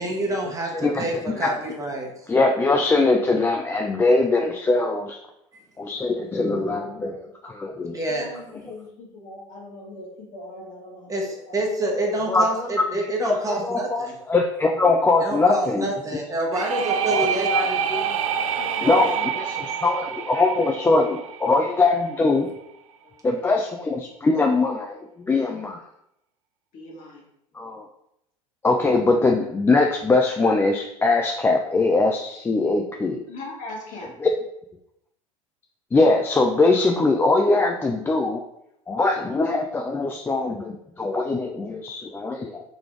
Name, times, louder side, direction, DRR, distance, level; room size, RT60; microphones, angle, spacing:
voice 1, 0.0-2.1 5.5-5.6 7.9-8.3 11.1-14.1 15.2-17.8, right 1 dB, 20° right, 0 dB, 1.0 m, -27 dB
voice 2, 0.7-1.5 2.3-5.2 5.8-7.1 7.4-8.0 12.3-12.9 13.2-16.2 17.1-18.2 18.8-22.5 23.2-25.8 27.5-27.9 28.6-33.2 34.2-34.3 35.9-38.4 38.9-42.6, left 3 dB, 15° left, 2 dB, 0.4 m, -22 dB
voice 3, 6.7-7.3 8.1-11.6 12.0-12.1 16.7-17.4 18.6-19.8 20.6-20.7 23.0-23.5 26.7-27.2 33.3-34.1, left 2 dB, 50° left, -2 dB, 1.6 m, -40 dB
sound 1, 16.5-22.2, right 7 dB, 85° right, 0.4 m, -27 dB
4.1 x 3.4 x 3.1 m, 0.80 s
hypercardioid pair, 85°, 17 cm